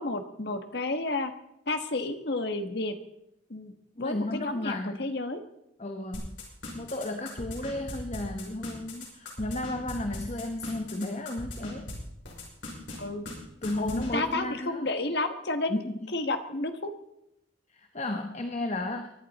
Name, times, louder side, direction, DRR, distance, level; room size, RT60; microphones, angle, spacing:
voice 1, 0.0-1.3 1.7-2.9 3.5-3.7 4.0-5.4 13.0-13.2 13.9-15.8 16.1-16.9, left 2 dB, 60° left, 8 dB, 1.3 m, -31 dB
voice 2, 4.0-5.0 5.8-6.3 6.7-11.9 13.6-14.8 15.7-15.9 17.7-19.1, left 2 dB, 35° left, 6 dB, 1.0 m, -33 dB
sound 1, 6.1-11.9 12.2-13.0 13.3-13.4 13.6-14.1, left 2 dB, 80° left, 6.0 m, -39 dB
24.0 x 11.0 x 4.1 m, 0.84 s
head